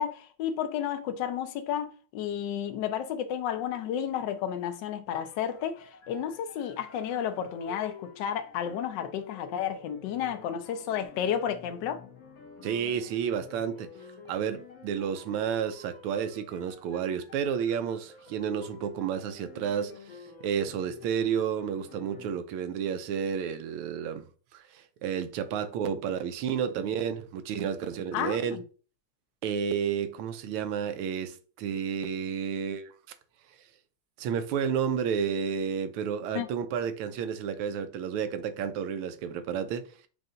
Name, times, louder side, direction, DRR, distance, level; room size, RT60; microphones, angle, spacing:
voice 1, 0.0-12.0 28.1-28.6 36.3-36.5, left 9 dB, 70° left, 1.2 m, -32 dB
sound 1, 5.1-22.4, left 5 dB, 50° left, 1.3 m, -50 dB
voice 2, 12.6-13.9 14.3-24.3 24.5-28.6 29.4-32.9 34.2-39.8, right 7 dB, 90° right, 1.5 m, -31 dB
5.5 x 2.5 x 3.7 m
omnidirectional pair, 2.3 m